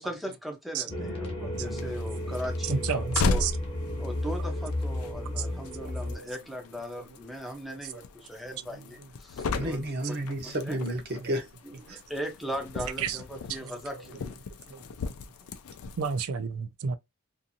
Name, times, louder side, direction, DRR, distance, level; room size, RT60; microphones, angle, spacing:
voice 1, 0.0-3.5 4.0-9.9 10.6-10.8 11.6-14.3, equal, ahead, 0.5 m, -38 dB
voice 2, 0.7-1.9 2.7-3.1 3.4-3.5 3.9-4.0 5.5-6.3 7.9-8.0 10.0-10.1 13.0-13.2 13.6-13.7 14.7-15.1 16.0-16.9, right 5 dB, 85° right, 0.4 m, -33 dB
sound 1, 0.9-6.2, left 1 dB, 25° left, 0.8 m, -33 dB
sound 2, 1.5-16.2, left 3 dB, 80° left, 0.4 m, -37 dB
voice 3, 9.5-11.4 11.9-12.0, right 1 dB, 45° right, 0.7 m, -31 dB
2.6 x 2.5 x 2.6 m
head